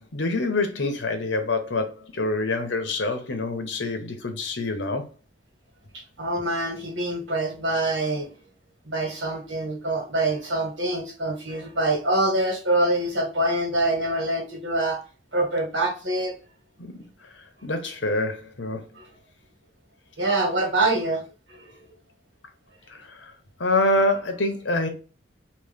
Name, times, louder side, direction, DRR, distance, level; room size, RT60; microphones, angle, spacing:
voice 1, 0.0-5.0 16.8-17.0 17.3-18.9 22.9-23.3 23.6-24.9, left 2 dB, 85° left, 1.0 m, -26 dB
voice 2, 6.2-8.3 8.9-15.0 15.3-16.3 19.0-19.1 20.2-21.8, right 1 dB, 85° right, 1.9 m, -25 dB
3.1 x 3.0 x 3.6 m
head